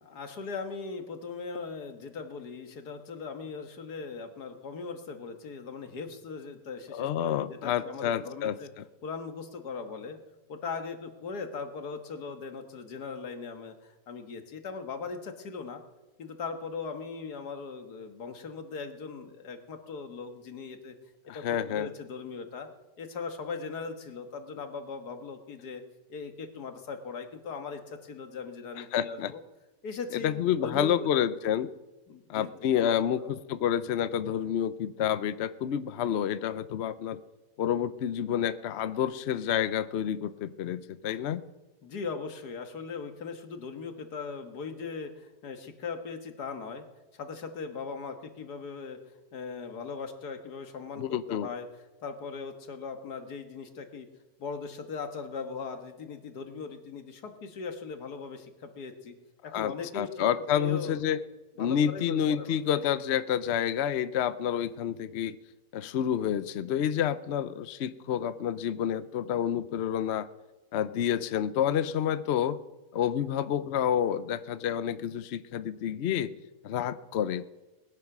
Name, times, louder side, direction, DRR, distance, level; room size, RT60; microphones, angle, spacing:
voice 1, 0.0-8.7 9.0-10.2 10.5-15.8 16.2-21.0 21.3-22.7 23.0-25.8 26.1-29.4 29.8-31.1 32.1-33.3 41.8-46.9 47.1-51.7 52.0-54.1 54.4-59.1 59.4-60.2 60.5-61.0 61.6-62.6, left 5 dB, 85° left, 7 dB, 2.0 m, -39 dB
voice 2, 6.9-8.8 21.3-21.9 28.9-29.3 30.2-31.7 32.3-37.2 37.6-41.4 51.0-51.5 59.5-61.2 61.6-65.4 65.7-70.3 70.7-72.6 72.9-76.3 76.6-77.4, left 9 dB, 60° left, 14 dB, 0.8 m, -29 dB
19.5 x 10.5 x 6.0 m, 1.1 s
omnidirectional pair, 1.6 m